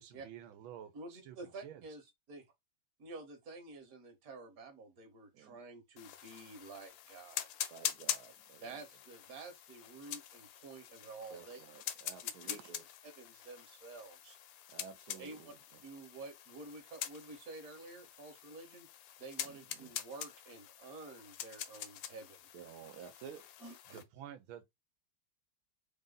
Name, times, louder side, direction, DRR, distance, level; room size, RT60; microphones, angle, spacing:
voice 1, 0.0-1.9 23.9-24.6, right 10 dB, 90° right, 1.5 m, -51 dB
voice 2, 0.9-2.4 3.0-7.5 8.6-11.6 12.2-12.7 13.2-14.4 15.2-15.5 15.8-18.9 19.2-22.4 23.6-24.0, right 3 dB, 50° right, 1.5 m, -50 dB
sound 1, 6.0-24.0, left 11 dB, 75° left, 1.2 m, -45 dB
voice 3, 7.7-8.8 11.3-12.8 14.7-15.6 19.4-19.9 22.5-23.5, right 7 dB, 70° right, 0.9 m, -52 dB
3.5 x 2.7 x 3.8 m
omnidirectional pair, 2.2 m